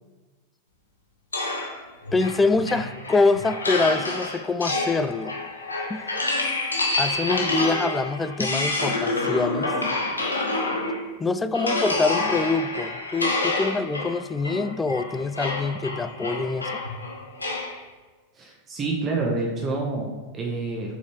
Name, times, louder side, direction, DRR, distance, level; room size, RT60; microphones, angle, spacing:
sound 1, 1.3-11.1 11.5-17.8, left 2 dB, 80° left, 1.1 m, -28 dB
voice 1, 2.1-5.3 5.9-6.4 7.0-9.7 11.2-16.8, left 3 dB, 15° left, 13 dB, 0.3 m, -25 dB
voice 2, 18.3-20.9, right 3 dB, 25° right, -1 dB, 1.0 m, -28 dB
7.9 x 4.0 x 3.2 m, 1.3 s
figure-of-eight pair, 90°, 0 cm